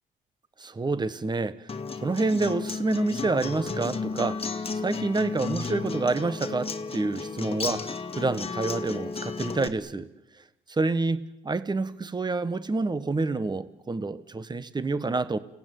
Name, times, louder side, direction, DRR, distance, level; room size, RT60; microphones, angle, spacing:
voice 1, 0.6-1.7 2.0-10.1 10.7-15.4, right 3 dB, 20° right, 1.4 m, -28 dB
Acoustic guitar, 1.7-9.7, left 4 dB, 30° left, 1.9 m, -33 dB
29.5 x 18.0 x 9.3 m
cardioid pair, 90°, 20 cm